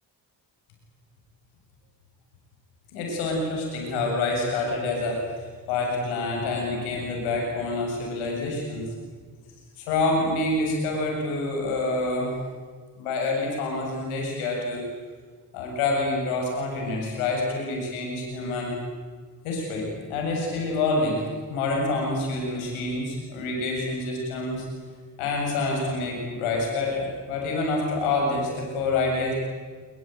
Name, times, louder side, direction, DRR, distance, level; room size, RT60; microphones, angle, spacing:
voice 1, 2.9-8.9 9.8-12.3 13.0-14.8 15.5-18.7 19.4-21.2 21.5-24.7 25.2-29.3, left 2 dB, 85° left, 0 dB, 7.7 m, -27 dB
25.5 x 23.0 x 9.3 m, 1.5 s
hypercardioid pair, 45°, 49 cm